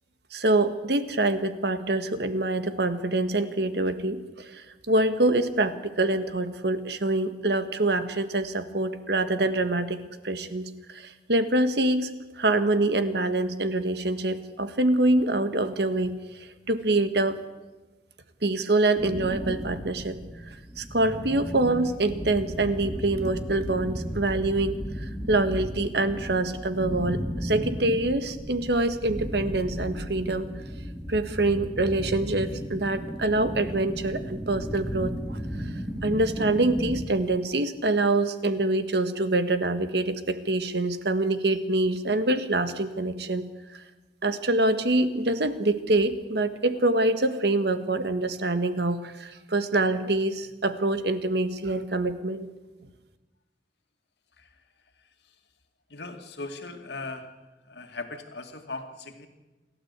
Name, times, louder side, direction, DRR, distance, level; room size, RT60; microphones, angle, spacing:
voice 1, 0.3-10.0 10.2-12.1 12.4-17.4 18.4-20.2 20.5-30.5 31.1-35.7 36.0-43.4 43.7-43.8 44.2-52.5, right 2 dB, 70° right, 10 dB, 1.6 m, -25 dB
sound 1, 19.0-37.0, equal, 10° right, 3.5 m, -35 dB
voice 2, 55.9-57.3 57.7-59.3, left 3 dB, 75° left, 5 dB, 2.2 m, -38 dB
28.0 x 12.5 x 8.2 m, 1.1 s
head